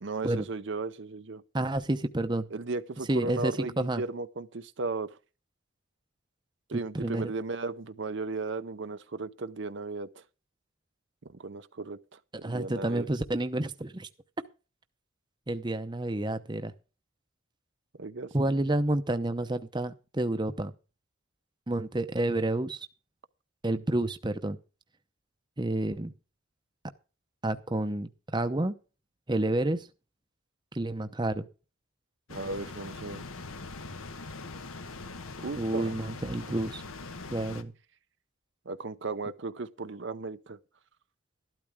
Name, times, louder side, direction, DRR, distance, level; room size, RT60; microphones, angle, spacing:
voice 1, 0.0-1.4 2.5-5.2 6.7-10.2 11.2-13.1 18.0-18.7 32.3-33.2 35.4-35.9 38.7-40.6, right 3 dB, 60° right, 0.7 m, -36 dB
voice 2, 1.5-2.5 3.1-4.0 6.7-7.3 12.4-14.1 15.5-16.7 18.3-20.7 21.7-22.9 23.6-24.6 25.6-26.1 27.4-28.7 29.3-29.9 30.7-31.5 35.6-36.8 37.3-37.7, right 1 dB, 20° right, 0.8 m, -29 dB
sound 1, 32.3-37.6, left 3 dB, 85° left, 1.3 m, -42 dB
13.0 x 12.0 x 3.6 m
head